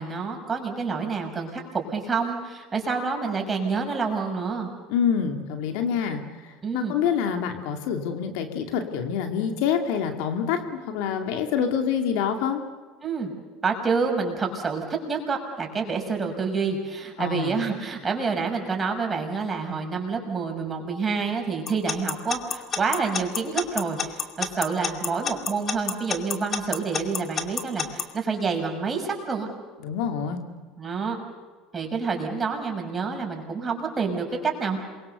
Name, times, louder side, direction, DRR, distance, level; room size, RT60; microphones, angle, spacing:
voice 1, 0.0-4.7 6.6-7.0 13.0-13.3 13.6-29.5 30.8-31.2 31.7-34.8, right 5 dB, 25° right, 2 dB, 6.2 m, -28 dB
voice 2, 4.9-12.6 17.2-17.6 29.8-30.4, left 7 dB, 70° left, 5 dB, 2.5 m, -26 dB
Alarm / Clock, 21.7-28.0, left 7 dB, 40° left, 2.5 m, -27 dB
27.5 x 23.0 x 6.9 m, 1.4 s
hypercardioid pair, 80°, 0 cm